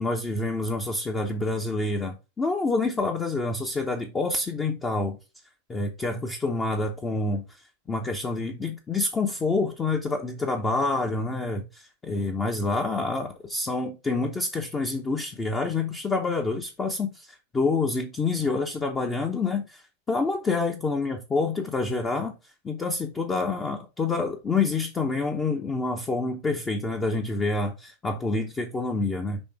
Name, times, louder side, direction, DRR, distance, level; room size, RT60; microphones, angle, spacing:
voice 1, 0.0-5.2 5.7-22.3 22.6-29.4, left 3 dB, 15° left, 0.8 m, -27 dB
6.3 x 3.3 x 4.8 m
figure-of-eight pair, 90°, 0 cm